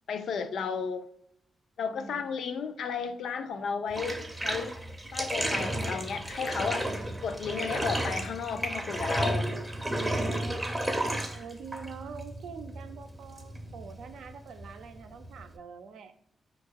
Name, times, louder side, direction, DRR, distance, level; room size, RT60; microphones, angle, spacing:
voice 1, 0.1-1.0 1.8-4.8 5.1-6.9 7.2-9.5, left 6 dB, 75° left, 0.4 m, -33 dB
voice 2, 1.9-2.3 5.5-6.1 6.9-7.2 10.2-16.1, right 6 dB, 90° right, 0.4 m, -45 dB
Bathtub (filling or washing), 3.9-15.6, right 1 dB, 10° right, 0.5 m, -33 dB
4.6 x 2.3 x 4.5 m
wide cardioid pair, 130°, 0 cm